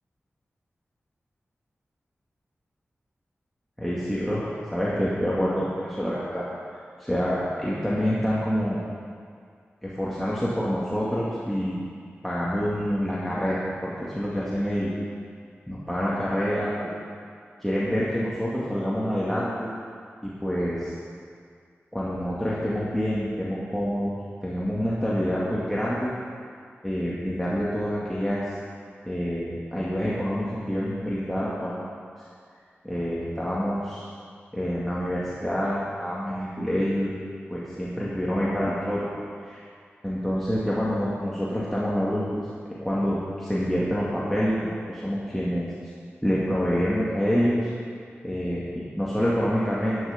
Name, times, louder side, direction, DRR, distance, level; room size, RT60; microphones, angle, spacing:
voice 1, 3.8-6.4 7.0-8.8 9.8-11.8 12.2-14.9 15.7-16.7 17.6-19.7 20.2-20.9 21.9-24.1 24.4-26.1 26.8-28.4 29.1-31.8 32.8-34.1 34.5-37.1 37.5-39.1 39.4-39.6 40.0-42.5 42.8-45.7 46.2-47.7 48.2-50.0, equal, 5° left, -8 dB, 2.2 m, -27 dB
11.0 x 10.5 x 5.2 m, 2.2 s
wide cardioid pair, 60°, 4 cm